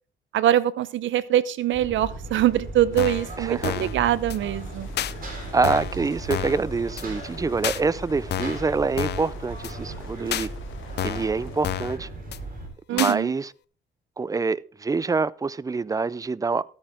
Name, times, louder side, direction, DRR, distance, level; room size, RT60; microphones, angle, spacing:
voice 1, 0.3-4.9 12.9-13.3, right 12 dB, 75° right, 0.7 m, -23 dB
sound 1, 1.7-12.7, right 2 dB, 45° right, 4.4 m, -37 dB
sound 2, 2.9-11.8, left 8 dB, 80° left, 1.9 m, -48 dB
sound 3, 3.0-3.3 3.6-4.0 4.3-4.4 5.0-5.1 5.6-6.0 6.3-6.6 7.0-7.1 7.6-7.8 8.3-8.6 9.0-9.3 9.6-9.7 10.3-10.5 11.0-11.3 11.6-12.0 12.3-12.4 13.0-13.1, left 11 dB, 60° left, 0.6 m, -29 dB
voice 2, 3.4-3.9 5.5-10.5 11.0-12.1 12.9-13.5 14.2-16.6, right 4 dB, 15° right, 0.4 m, -26 dB
13.5 x 8.8 x 3.6 m
cardioid pair, 90°, 20 cm